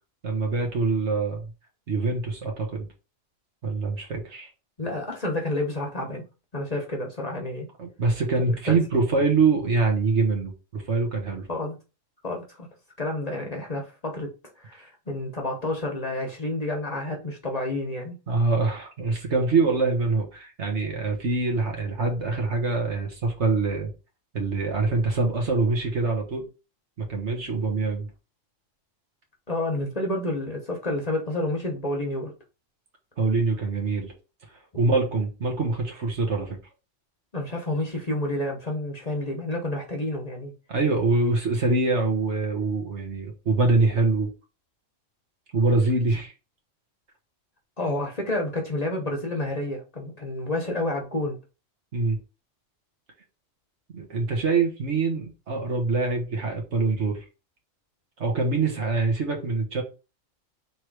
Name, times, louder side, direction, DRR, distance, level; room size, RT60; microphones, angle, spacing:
voice 1, 0.2-1.4 1.9-2.9 3.6-4.5 7.8-11.5 18.3-23.9 24.3-26.4 27.0-28.1 33.2-34.1 34.8-36.6 40.7-44.3 45.5-46.3 51.9-52.2 53.9-57.2 58.2-59.8, right 3 dB, 60° right, 1.5 m, -24 dB
voice 2, 4.8-6.2 6.5-7.7 8.5-8.8 11.5-11.8 12.2-12.7 13.0-14.3 14.6-18.2 29.5-32.3 37.3-40.5 47.8-51.4, left 1 dB, 35° left, 1.0 m, -29 dB
3.6 x 3.2 x 4.6 m
omnidirectional pair, 1.3 m